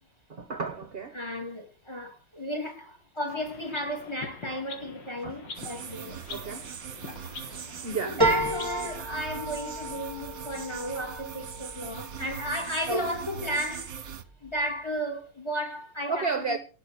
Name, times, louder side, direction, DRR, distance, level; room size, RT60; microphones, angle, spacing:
voice 1, 0.3-1.2 5.2-5.4 6.3-6.7 7.8-8.2 12.9-13.1 16.1-16.6, right 4 dB, 35° right, 1.2 m, -31 dB
voice 2, 1.1-6.2 8.0-14.1 14.4-16.6, equal, 15° left, 3.3 m, -34 dB
sound 1, 3.3-8.7, left 4 dB, 75° left, 2.9 m, -44 dB
sound 2, 5.5-14.2, right 8 dB, 50° right, 1.6 m, -41 dB
sound 3, 8.2-13.0 13.4-14.1 14.5-14.6, right 1 dB, 10° right, 2.3 m, -32 dB
18.0 x 6.6 x 6.6 m
omnidirectional pair, 2.0 m